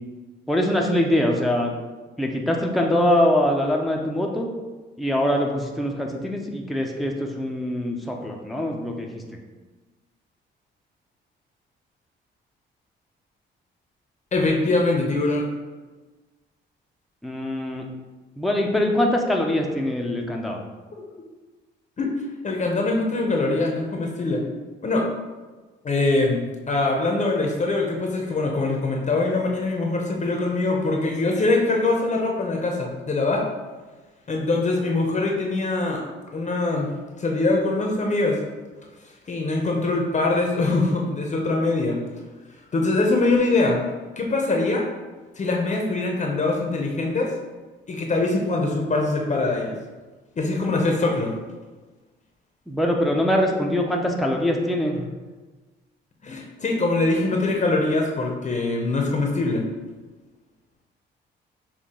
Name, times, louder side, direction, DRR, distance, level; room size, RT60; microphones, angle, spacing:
voice 1, 0.5-1.7 2.2-4.5 5.0-9.2 17.2-17.8 18.4-20.6 52.7-55.0, left 1 dB, ahead, 0 dB, 0.6 m, -23 dB
voice 2, 14.3-15.4 20.9-21.0 22.0-22.1 22.4-24.4 24.8-25.0 25.8-33.4 34.3-36.0 36.3-36.9 37.2-38.4 39.3-42.0 42.7-43.8 44.2-44.8 45.4-47.3 47.9-49.8 50.4-51.3 55.0-55.1 56.2-59.6, left 2 dB, 35° left, 0 dB, 0.7 m, -23 dB
5.8 x 2.3 x 3.6 m, 1.3 s
cardioid pair, 90°, 20 cm